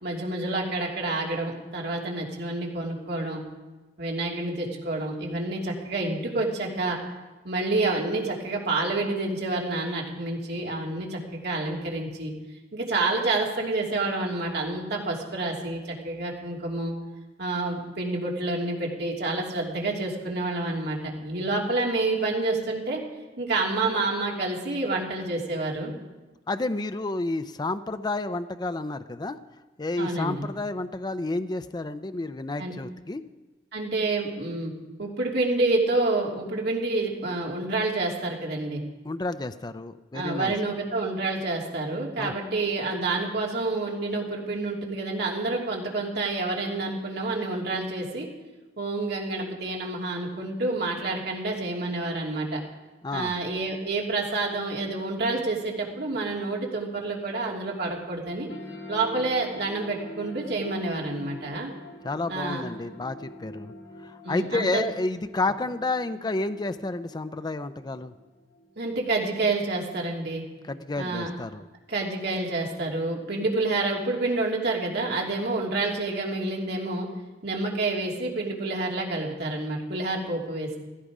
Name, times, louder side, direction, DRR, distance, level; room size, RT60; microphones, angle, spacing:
voice 1, 0.0-3.4 4.0-7.0 7.4-12.3 12.7-16.9 17.4-23.0 23.4-25.9 30.0-30.4 32.6-32.7 33.7-34.7 35.0-38.8 40.1-48.3 48.8-52.6 53.1-58.5 58.9-61.7 62.3-62.6 64.2-64.9 68.8-70.4 71.0-71.3 71.9-77.1 77.4-80.8, right 2 dB, 65° right, -2 dB, 3.0 m, -28 dB
voice 2, 26.5-29.4 29.8-33.2 39.0-40.5 42.2-42.3 53.0-53.3 62.0-63.7 64.0-68.1 70.7-71.6, left 2 dB, 25° left, 10 dB, 0.5 m, -30 dB
sound 1, 58.5-69.5, left 2 dB, 75° left, 3.1 m, -45 dB
16.0 x 15.0 x 4.9 m, 1.2 s
head